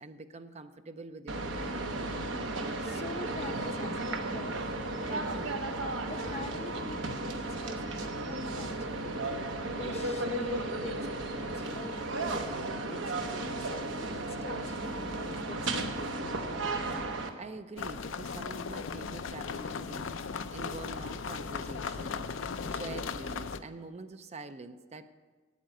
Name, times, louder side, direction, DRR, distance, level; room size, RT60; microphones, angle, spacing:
voice 1, 0.0-2.2 17.3-25.1, right 3 dB, 35° right, 10 dB, 0.5 m, -45 dB
sound 1, 1.3-17.3, right 2 dB, 80° right, 1.1 m, -34 dB
voice 2, 2.5-5.5 6.1-16.8, left 2 dB, 35° left, 8 dB, 0.7 m, -46 dB
sound 2, 17.8-23.6, left 5 dB, 85° left, 0.6 m, -37 dB
9.1 x 8.5 x 7.7 m, 1.4 s
head